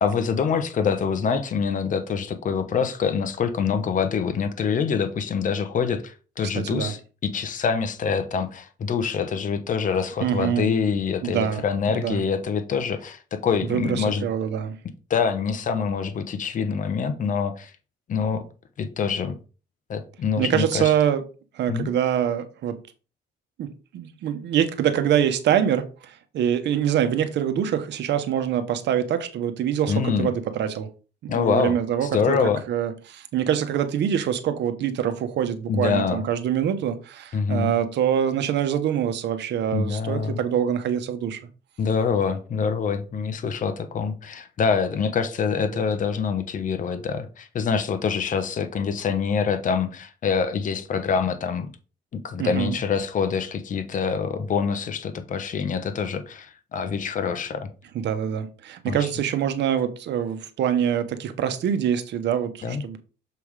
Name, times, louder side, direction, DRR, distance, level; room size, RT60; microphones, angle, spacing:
voice 1, 0.0-14.3 15.1-17.7 18.1-18.5 18.8-19.4 19.9-20.9 21.7-21.9 29.9-30.3 31.3-32.6 35.7-36.2 37.3-37.8 39.7-40.4 41.8-51.7 52.1-57.7 58.9-59.1 62.6-62.8, left 6 dB, 40° left, 1.0 m, -25 dB
voice 2, 6.5-6.9 10.2-10.7 11.2-12.2 13.7-14.8 20.4-21.2 21.5-22.8 23.6-30.9 31.2-32.4 32.7-41.4 45.7-45.8 52.4-52.8 57.9-63.0, right 9 dB, 65° right, 1.0 m, -25 dB
6.9 x 3.5 x 4.8 m
cardioid pair, 125°, 19 cm